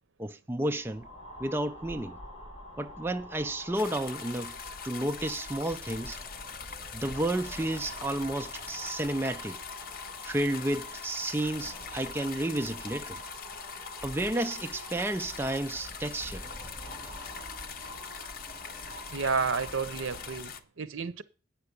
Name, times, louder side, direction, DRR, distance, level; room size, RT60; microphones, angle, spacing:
voice 1, 0.2-1.1 1.4-2.2 2.8-4.5 4.8-6.2 6.9-9.6 10.2-13.2 14.0-16.5 17.0-17.1, right 1 dB, 10° right, 0.4 m, -31 dB
sound 1, 0.7-20.6, equal, 30° left, 4.9 m, -45 dB
sound 2, 3.7-20.6, left 7 dB, 50° left, 0.8 m, -43 dB
voice 2, 19.1-21.2, right 5 dB, 85° right, 0.8 m, -31 dB
8.6 x 5.8 x 8.1 m
head